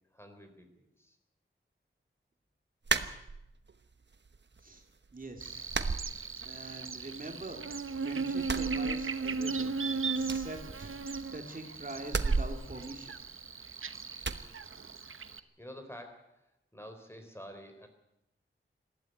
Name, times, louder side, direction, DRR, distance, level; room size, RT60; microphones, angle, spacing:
voice 1, 0.1-1.2 15.1-17.9, equal, 10° left, 6 dB, 3.9 m, -50 dB
sound 1, 2.9-3.8 4.1-4.8 5.1-5.2 5.7-6.8 7.1-7.9 8.3-9.5 9.8-9.9 10.2-11.4 12.0-13.7 14.2-14.5, right 4 dB, 55° right, 1.1 m, -35 dB
voice 2, 5.1-5.7 6.4-7.6 8.0-9.7 10.1-13.1, right 2 dB, 40° right, 3 dB, 2.4 m, -44 dB
Buzz, 5.4-15.4, right 4 dB, 75° right, 1.0 m, -37 dB
20.0 x 15.0 x 9.2 m, 0.88 s
wide cardioid pair, 80°, 21 cm